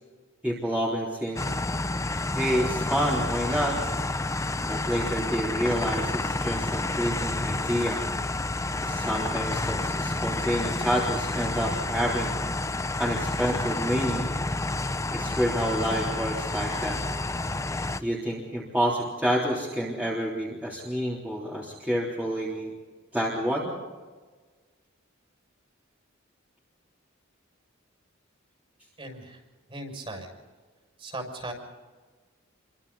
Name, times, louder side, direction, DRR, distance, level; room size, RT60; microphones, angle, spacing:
voice 1, 0.4-1.4 2.3-3.8 4.6-8.0 8.8-12.4 13.0-14.3 15.1-17.0 18.0-22.7 23.1-23.7, equal, 5° right, -6 dB, 3.5 m, -28 dB
sound 1, 1.4-18.0, left 2 dB, 15° left, 0.6 m, -29 dB
voice 2, 29.0-29.4 29.7-30.3 31.0-31.5, right 2 dB, 30° right, 3 dB, 6.6 m, -37 dB
29.0 x 24.5 x 4.2 m, 1.4 s
head